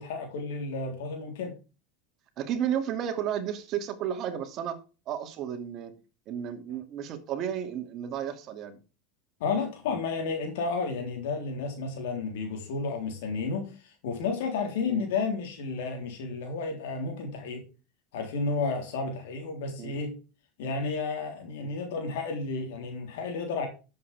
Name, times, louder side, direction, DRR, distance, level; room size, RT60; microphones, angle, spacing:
voice 1, 0.0-1.5 6.7-6.8 9.4-17.6 18.1-20.1 20.6-23.7, left 4 dB, 80° left, 2 dB, 3.7 m, -32 dB
voice 2, 2.4-4.8 5.1-5.9 6.3-8.8 14.9-15.1 19.8-19.9 21.6-21.7, right 9 dB, 50° right, 7 dB, 2.5 m, -33 dB
11.0 x 7.8 x 3.5 m, 0.31 s
supercardioid pair, 105°, 0 cm